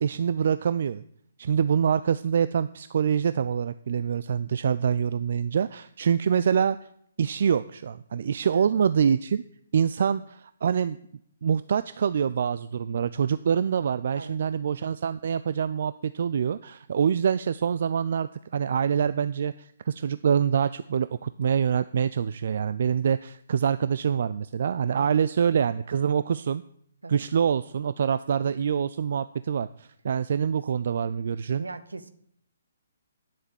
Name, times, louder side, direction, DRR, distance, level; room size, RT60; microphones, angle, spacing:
voice 1, 0.0-1.0 1.4-6.8 7.2-9.4 9.7-11.0 11.4-26.6 27.1-31.6, right 7 dB, 55° right, 14 dB, 0.4 m, -25 dB
voice 2, 8.5-8.8 10.0-10.2 14.1-14.4 27.0-27.2 31.6-32.1, right 3 dB, 75° right, 12 dB, 1.1 m, -40 dB
10.5 x 7.4 x 7.1 m, 0.67 s
figure-of-eight pair, 135°, 0 cm